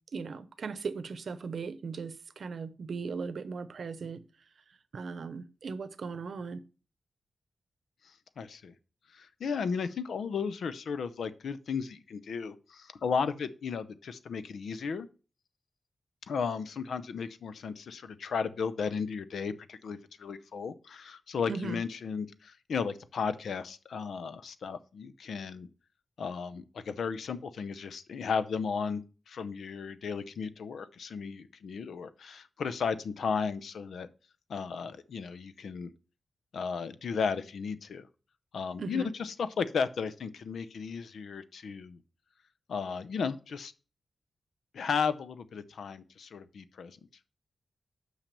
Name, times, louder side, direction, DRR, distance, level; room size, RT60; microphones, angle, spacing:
voice 1, 0.1-4.2 4.7-6.6 21.5-21.8 38.8-39.1, right 5 dB, 70° right, 0.7 m, -38 dB
voice 2, 8.4-8.7 9.1-15.1 16.3-25.7 26.2-34.1 34.5-35.9 36.5-38.1 38.5-42.0 42.7-43.7 44.7-47.0, left 5 dB, 85° left, 0.6 m, -34 dB
5.9 x 5.7 x 6.8 m
cardioid pair, 80°, 0 cm